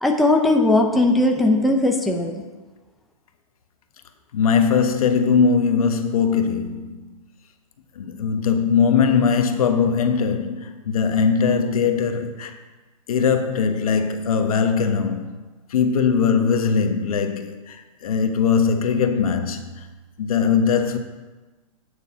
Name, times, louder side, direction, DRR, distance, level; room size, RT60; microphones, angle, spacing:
voice 1, 0.0-2.4, left 2 dB, ahead, 0.7 m, -18 dB
voice 2, 4.3-7.1 8.0-12.5 13.1-15.3 15.7-19.8 20.2-21.0, left 6 dB, 75° left, 1.3 m, -20 dB
9.9 x 6.6 x 5.6 m
hypercardioid pair, 145°, 18 cm